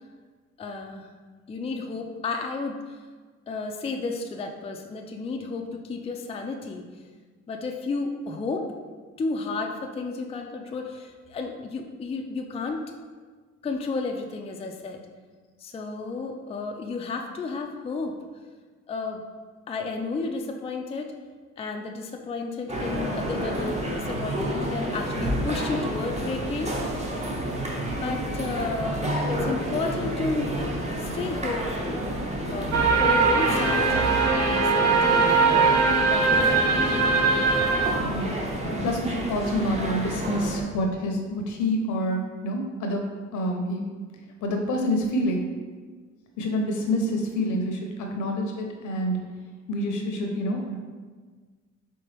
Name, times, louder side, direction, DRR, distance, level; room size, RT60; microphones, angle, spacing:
voice 1, 0.6-1.1 1.5-3.0 3.5-6.8 7.5-8.7 9.2-12.8 13.6-15.0 15.6-18.2 18.9-19.2 19.7-21.1 21.6-27.2 27.9-29.0 29.3-30.6 31.0-32.0 32.5-32.7 33.0-37.1, left 3 dB, 20° left, 3 dB, 0.4 m, -32 dB
sound 1, 22.7-40.6, right 1 dB, 20° right, 0.8 m, -30 dB
sound 2, 32.7-37.9, right 4 dB, 60° right, 0.9 m, -21 dB
voice 2, 38.8-43.0 43.3-43.8 44.4-45.5 46.4-49.2 49.7-50.7, equal, 75° left, 2 dB, 0.8 m, -27 dB
4.5 x 3.4 x 3.3 m, 1.5 s
cardioid pair, 90°, 30 cm